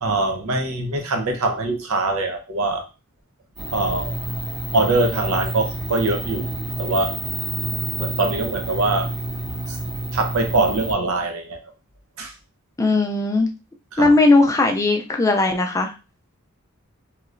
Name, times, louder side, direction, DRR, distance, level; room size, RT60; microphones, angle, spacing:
voice 1, 0.0-2.8 3.7-4.1 4.7-6.5 6.8-7.2 8.0-9.1 9.7-9.8 10.1-11.6 12.2-12.3 13.9-14.1, right 2 dB, 80° right, 4 dB, 0.7 m, -23 dB
sound 1, 3.6-10.9, right 1 dB, 60° right, 1.5 m, -28 dB
voice 2, 12.8-13.5 14.0-15.9, left 2 dB, 15° left, 3 dB, 0.3 m, -18 dB
3.1 x 2.9 x 2.5 m, 0.30 s
head